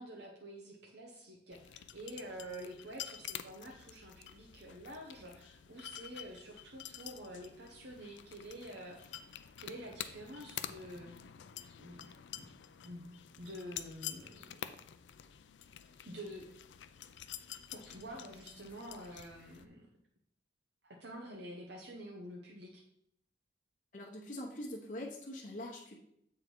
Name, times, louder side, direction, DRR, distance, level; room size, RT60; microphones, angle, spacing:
voice 1, 0.0-9.3 9.6-11.4 11.8-12.5 12.8-14.6 16.0-16.5 17.7-19.9 20.8-22.8, right 1 dB, 75° right, -1 dB, 1.0 m, -48 dB
sound 1, 1.5-19.7, left 10 dB, 90° left, 0.4 m, -48 dB
voice 2, 23.9-26.0, left 1 dB, 45° left, -2 dB, 0.9 m, -43 dB
8.0 x 3.7 x 4.5 m, 0.73 s
head